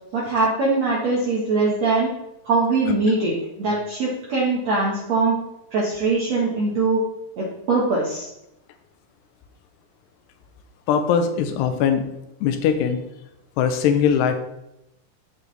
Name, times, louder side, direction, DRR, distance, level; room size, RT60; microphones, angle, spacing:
voice 1, 0.1-2.1 2.4-5.4 5.7-7.0 7.4-8.3, right 3 dB, 55° right, -5 dB, 2.1 m, -22 dB
voice 2, 10.9-12.1 12.4-13.0 13.6-14.4, left 7 dB, 85° left, 7 dB, 2.9 m, -20 dB
14.5 x 4.9 x 3.4 m, 0.84 s
omnidirectional pair, 4.8 m